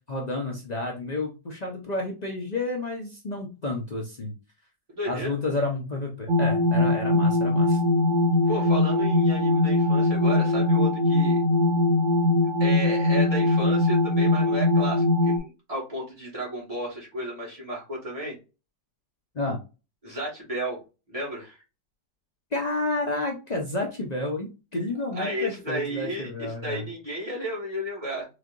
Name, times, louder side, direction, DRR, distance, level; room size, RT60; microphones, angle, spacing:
voice 1, 0.1-4.3 5.1-7.8 19.3-19.6 22.5-26.9, left 2 dB, 85° left, -1 dB, 0.3 m, -30 dB
voice 2, 4.9-5.3 8.5-11.4 12.6-18.4 20.0-20.8 21.1-21.6 25.1-28.3, equal, 20° right, -4 dB, 1.7 m, -33 dB
sound 1, 6.3-15.4, left 2 dB, 60° right, 0.5 m, -21 dB
4.2 x 3.3 x 2.5 m, 0.30 s
omnidirectional pair, 1.9 m